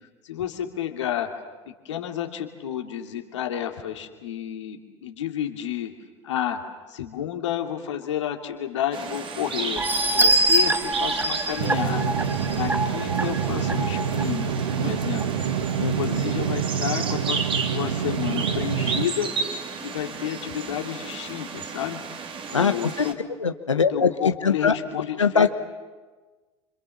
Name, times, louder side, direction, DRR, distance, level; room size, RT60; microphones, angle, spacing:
voice 1, 0.2-1.3 1.7-5.9 6.2-6.6 6.9-12.2 12.5-15.3 15.9-17.4 17.7-19.3 19.8-22.0 22.5-23.2 23.9-25.5, left 10 dB, 75° left, 4 dB, 3.0 m, -30 dB
sound 1, 8.9-23.1, right 5 dB, 35° right, 3.0 m, -33 dB
sound 2, 9.8-14.2 14.7-14.8 15.2-15.3, right 1 dB, 10° right, 1.3 m, -24 dB
sound 3, 11.6-19.1, right 7 dB, 75° right, 1.3 m, -27 dB
voice 2, 15.8-16.2 22.5-23.1 23.4-24.7 25.2-25.5, left 5 dB, 90° left, 9 dB, 1.1 m, -22 dB
27.0 x 26.5 x 7.4 m, 1.3 s
figure-of-eight pair, 75°, 15 cm